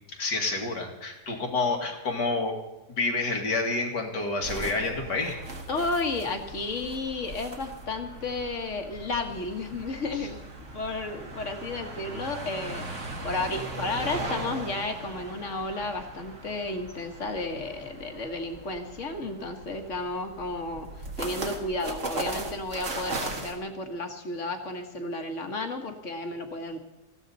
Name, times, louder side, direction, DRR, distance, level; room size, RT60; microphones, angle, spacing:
voice 1, 0.1-2.6 2.9-5.4, left 3 dB, 80° left, 2 dB, 2.8 m, -28 dB
sound 1, 4.4-23.5, right 2 dB, 45° right, 2.1 m, -38 dB
voice 2, 5.7-26.8, left 2 dB, 45° left, 5 dB, 1.8 m, -33 dB
19.5 x 15.0 x 4.1 m, 0.98 s
omnidirectional pair, 1.8 m